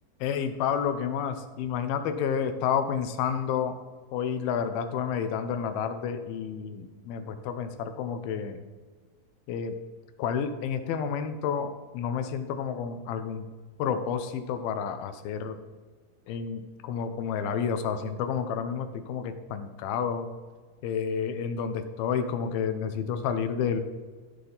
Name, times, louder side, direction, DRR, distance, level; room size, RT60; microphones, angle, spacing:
voice 1, 0.2-3.8 4.1-8.6 9.5-9.8 10.2-13.5 13.8-15.6 16.3-20.3 20.8-23.8, left 7 dB, 80° left, 9 dB, 2.6 m, -30 dB
14.5 x 6.2 x 3.9 m, 1.4 s
omnidirectional pair, 4.4 m